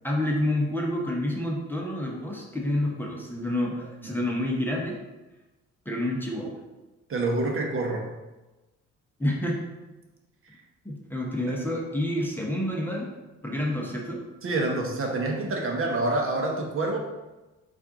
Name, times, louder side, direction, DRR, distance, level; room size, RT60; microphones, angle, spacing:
voice 1, 0.0-5.0 5.9-6.6 9.2-9.6 10.8-13.1 13.4-14.2, left 1 dB, 5° left, -2 dB, 0.8 m, -28 dB
voice 2, 7.1-8.1 11.5-11.6 14.4-17.0, right 2 dB, 45° right, 1 dB, 0.8 m, -27 dB
4.1 x 2.5 x 4.7 m, 1.1 s
cardioid pair, 90°, 30 cm